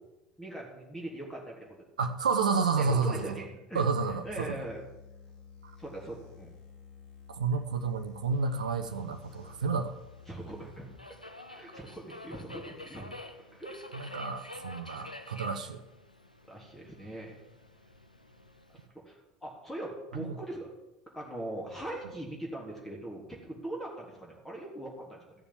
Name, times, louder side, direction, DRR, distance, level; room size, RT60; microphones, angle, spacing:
voice 1, 0.4-1.8 2.8-3.8 4.1-4.8 5.8-6.5 10.3-10.9 11.5-13.1 13.5-14.2 15.5-15.6 16.5-17.3 18.9-20.7 21.1-25.2, right 1 dB, 10° left, -2 dB, 3.5 m, -41 dB
voice 2, 2.0-3.2 3.7-4.5 7.4-9.9 14.1-15.8 20.2-20.3, right 4 dB, 75° right, 8 dB, 0.8 m, -30 dB
sound 1, 4.1-11.0, left 5 dB, 55° left, 3.1 m, -52 dB
Subway metro underground, 8.3-18.9, left 1 dB, 90° left, 1.0 m, -49 dB
14.0 x 7.0 x 7.4 m, 0.99 s
figure-of-eight pair, 70°, 4 cm